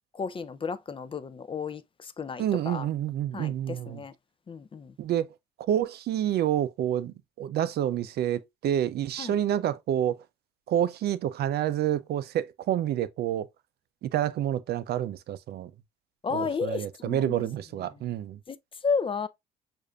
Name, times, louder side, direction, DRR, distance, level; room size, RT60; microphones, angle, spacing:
voice 1, 0.1-2.9 3.3-4.1 4.5-5.0 9.2-9.4 16.2-17.5 18.5-19.3, left 5 dB, 25° left, 0.4 m, -33 dB
voice 2, 2.4-4.0 5.0-10.2 10.7-13.5 14.0-15.7 16.3-18.4, right 11 dB, 60° right, 0.4 m, -28 dB
6.4 x 2.6 x 2.2 m
supercardioid pair, 70°, 19 cm